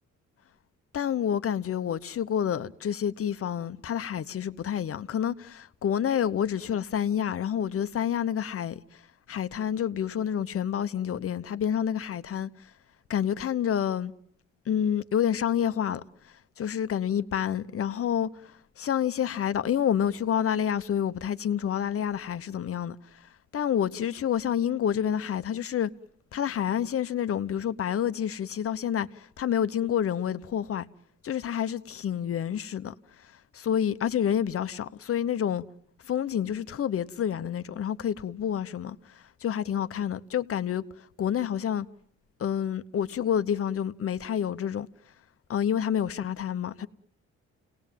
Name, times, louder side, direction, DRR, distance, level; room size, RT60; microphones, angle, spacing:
voice 1, 0.9-9.0 9.3-12.5 13.1-14.1 14.7-16.0 16.6-18.5 18.8-23.0 23.5-25.9 26.3-30.9 31.2-32.9 33.5-35.6 36.1-40.8 41.2-41.9 42.4-44.9 45.5-46.9, left 9 dB, 50° left, 1.0 m, -28 dB
29.0 x 18.5 x 7.5 m
cardioid pair, 90°, 30 cm